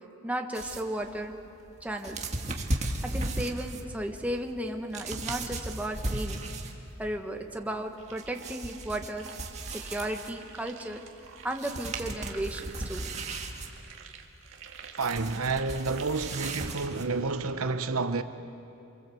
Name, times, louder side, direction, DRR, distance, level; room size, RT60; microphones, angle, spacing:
voice 1, 0.2-1.3 1.8-2.2 2.7-6.4 7.0-9.3 9.7-11.0 11.4-13.0, right 1 dB, 5° right, 1.4 m, -34 dB
sound 1, 0.5-7.0 7.2-10.5 11.2-11.3 11.6-17.3, right 2 dB, 30° right, 1.8 m, -36 dB
sound 2, 8.0-17.1, right 6 dB, 60° right, 2.1 m, -49 dB
voice 2, 15.0-18.2, right 4 dB, 80° right, 1.0 m, -29 dB
28.5 x 24.5 x 7.8 m
head